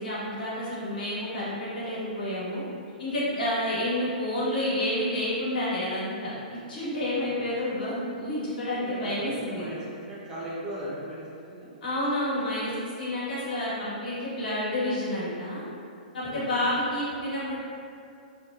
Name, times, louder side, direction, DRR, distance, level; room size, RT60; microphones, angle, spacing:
voice 1, 0.0-2.6 3.0-9.6 11.8-15.6 16.1-17.6, left 1 dB, 75° left, -9 dB, 1.3 m, -29 dB
voice 2, 8.8-9.8 10.0-11.2 11.5-11.7 16.3-16.4, right 1 dB, 15° right, -10 dB, 0.7 m, -38 dB
3.2 x 2.1 x 2.4 m, 2.4 s
hypercardioid pair, 125°, 5 cm